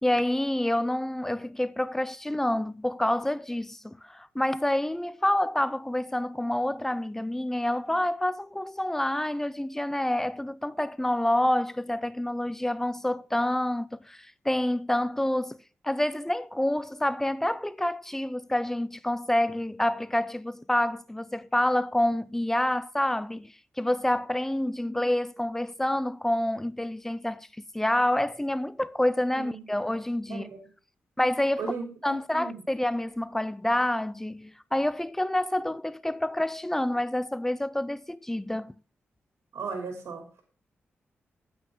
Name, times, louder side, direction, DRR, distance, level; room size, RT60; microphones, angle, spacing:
voice 1, 0.0-15.6 15.8-27.5 27.7-30.5 31.2-31.7 32.0-38.7, left 1 dB, 10° left, 0.5 m, -28 dB
voice 2, 30.3-30.6 31.6-31.8 32.3-32.6 39.5-40.2, right 4 dB, 90° right, 2.8 m, -36 dB
9.0 x 8.7 x 3.6 m
cardioid pair, 100°, 4 cm